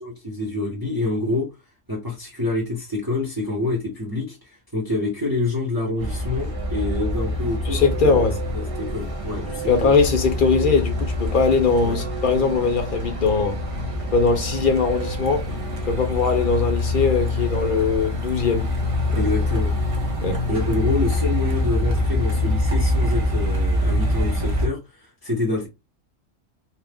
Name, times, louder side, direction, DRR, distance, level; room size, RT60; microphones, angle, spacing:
voice 1, 0.0-1.5 1.9-4.4 4.7-8.2 8.5-9.9 11.8-12.0 19.1-19.7 20.5-25.7, left 2 dB, 20° right, 1.0 m, -27 dB
Truck, 6.0-24.7, left 1 dB, 35° right, 0.5 m, -25 dB
voice 2, 7.6-8.4 9.7-13.6 14.1-15.5 15.9-18.7 19.1-19.3 20.2-20.4, left 4 dB, 55° left, 0.6 m, -20 dB
2.7 x 2.4 x 3.4 m
omnidirectional pair, 1.3 m